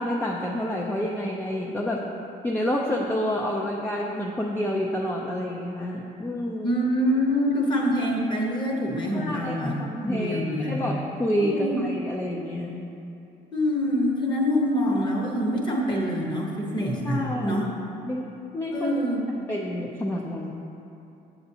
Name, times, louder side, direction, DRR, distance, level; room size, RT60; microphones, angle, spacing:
voice 1, 0.0-2.1 2.4-6.8 9.1-12.8 17.0-17.6 18.0-18.9 19.5-20.5, left 1 dB, 10° left, -1 dB, 0.4 m, -28 dB
voice 2, 6.6-10.9 11.5-11.8 13.5-17.7 18.7-19.4, equal, 25° left, -1 dB, 1.1 m, -25 dB
7.5 x 7.0 x 2.7 m, 2.8 s
cardioid pair, 110°, 17 cm